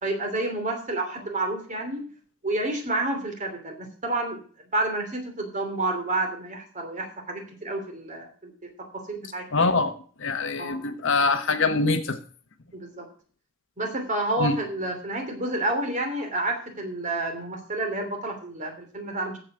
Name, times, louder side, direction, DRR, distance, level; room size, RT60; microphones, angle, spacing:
voice 1, 0.0-2.0 2.4-4.4 4.7-9.7 10.6-10.8 12.7-13.1 13.8-19.4, right 2 dB, 35° right, 4 dB, 2.9 m, -29 dB
voice 2, 9.5-9.9 10.2-12.2 14.4-14.5, left 3 dB, 65° left, 9 dB, 1.2 m, -24 dB
14.5 x 5.1 x 6.2 m, 0.43 s
head